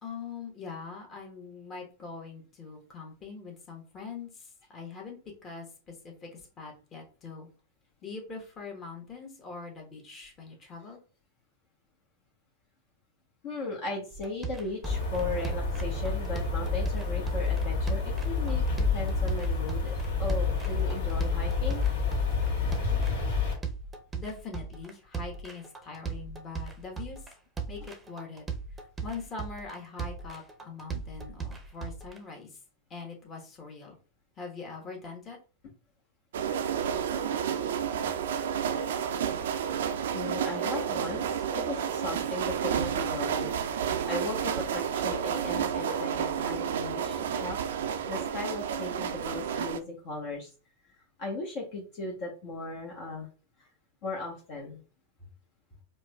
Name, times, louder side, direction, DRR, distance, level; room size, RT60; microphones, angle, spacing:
voice 1, 0.0-7.5 8.0-11.0 24.1-27.2 27.7-28.4 29.0-32.5 32.9-33.9 34.4-35.4, left 4 dB, 30° left, 0 dB, 1.2 m, -42 dB
voice 2, 13.4-18.6 18.9-21.8 37.3-37.4 40.1-43.5 44.0-47.6 48.1-50.5 51.2-53.3 54.0-54.8, left 3 dB, 55° left, -2 dB, 1.0 m, -37 dB
sound 1, 14.1-32.2, right 5 dB, 15° right, 0.6 m, -38 dB
sound 2, 14.8-23.5, left 4 dB, 75° left, 1.3 m, -29 dB
sound 3, 36.3-49.8, right 8 dB, 75° right, 0.3 m, -30 dB
4.7 x 2.2 x 2.3 m, 0.36 s
hypercardioid pair, 100°, 0 cm